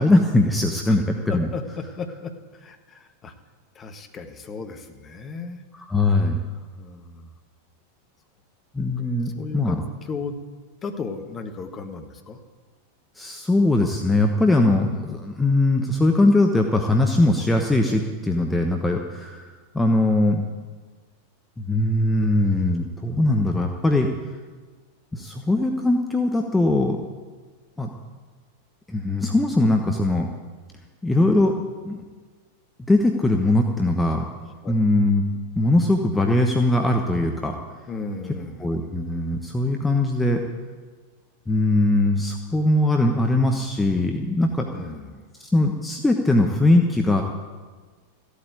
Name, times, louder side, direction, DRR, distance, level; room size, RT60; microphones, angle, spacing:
voice 1, 0.0-1.5 5.8-6.4 8.7-9.8 13.2-20.4 21.6-24.1 25.1-27.0 27.8-27.9 28.9-30.3 31.0-31.5 31.8-32.0 32.9-34.2 34.7-35.2 35.6-37.5 38.6-40.4 41.5-44.7 45.4-47.2, left 2 dB, 10° left, 3 dB, 1.2 m, -21 dB
voice 2, 1.3-3.3 3.7-5.6 6.5-7.3 9.4-10.4 10.8-12.4 34.6-34.7 37.9-38.7 44.7-45.2, left 4 dB, 25° left, 6 dB, 1.6 m, -35 dB
14.5 x 8.4 x 9.3 m, 1.4 s
figure-of-eight pair, 90°, 0 cm